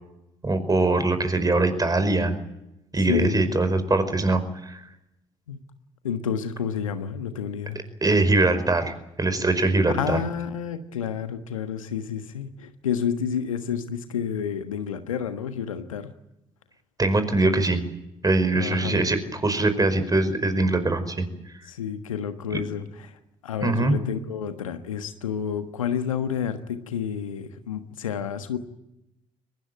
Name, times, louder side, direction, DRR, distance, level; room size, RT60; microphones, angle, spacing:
voice 1, 0.4-2.3 2.9-4.8 8.0-10.2 17.0-17.8 18.2-21.3 23.6-23.9, right 2 dB, 20° right, 10 dB, 5.1 m, -22 dB
voice 2, 3.1-3.5 5.5-5.6 6.0-7.8 9.9-16.1 18.5-19.1 21.7-23.2 23.4-28.6, left 8 dB, 80° left, 9 dB, 1.4 m, -30 dB
23.0 x 20.5 x 8.9 m, 0.87 s
figure-of-eight pair, 50°, 17 cm